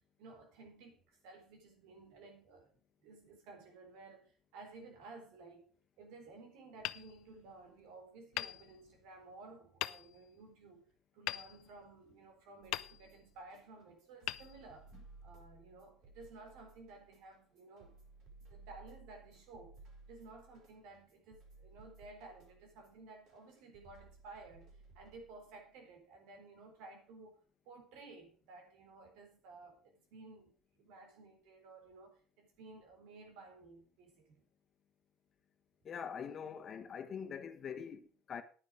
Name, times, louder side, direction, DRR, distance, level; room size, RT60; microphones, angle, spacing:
voice 1, 0.2-2.7 3.0-5.7 6.0-10.8 11.1-14.9 15.2-18.0 18.5-19.7 20.0-27.4 27.7-30.5 30.8-34.4, right 3 dB, 80° right, 3.9 m, -55 dB
Hammer, 6.8-7.8 8.3-9.3 9.8-10.4 11.3-12.2 12.7-13.4 14.2-15.2, left 16 dB, 70° left, 0.5 m, -43 dB
sound 1, 12.6-25.6, right 3 dB, 65° right, 5.7 m, -59 dB
voice 2, 35.8-38.4, left 7 dB, 45° left, 1.3 m, -44 dB
10.5 x 9.7 x 5.0 m
cardioid pair, 105°, 0 cm